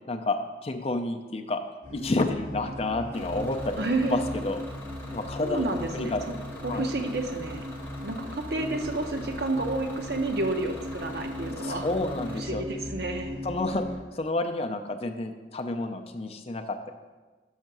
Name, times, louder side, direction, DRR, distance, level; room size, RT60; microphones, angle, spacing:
voice 1, 0.1-1.6 1.9-4.6 5.1-5.7 5.9-6.2 6.7-6.8 11.6-12.6 13.4-13.8 14.1-16.9, left 2 dB, 35° left, 6 dB, 0.5 m, -30 dB
sound 1, 1.8-13.9, left 1 dB, 40° right, 2.7 m, -38 dB
Bus / Engine, 3.1-12.4, left 2 dB, 10° left, 1.1 m, -45 dB
voice 2, 3.8-4.2 5.4-6.4 6.6-7.6 8.0-11.9 12.4-13.4, right 2 dB, 60° right, 4 dB, 0.9 m, -30 dB
6.5 x 5.6 x 6.1 m, 1.3 s
head